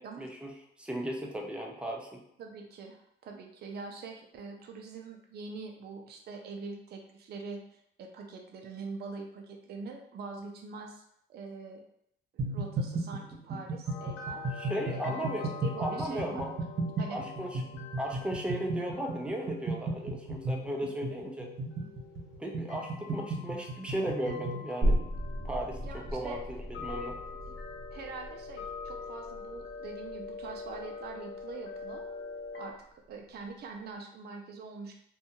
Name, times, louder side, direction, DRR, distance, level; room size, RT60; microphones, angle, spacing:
voice 1, 0.0-2.2 14.6-16.5 17.1-17.7 18.0-21.5 22.4-25.0 25.4-27.2, right 1 dB, 5° right, 1 dB, 0.5 m, -36 dB
voice 2, 2.4-11.0 11.3-11.8 12.3-14.4 14.9-15.1 15.6-16.6 17.0-17.2 21.8-21.9 25.8-26.4 27.9-32.1 32.5-35.0, right 4 dB, 55° right, 2 dB, 0.5 m, -44 dB
sound 1, 12.4-24.6, right 2 dB, 75° right, 1.1 m, -35 dB
sound 2, 13.9-32.7, left 4 dB, 75° left, 0.6 m, -45 dB
sound 3, 24.8-32.1 32.5-32.6, equal, 35° right, 0.9 m, -35 dB
2.6 x 2.2 x 2.8 m, 0.74 s
cardioid pair, 90°, 20 cm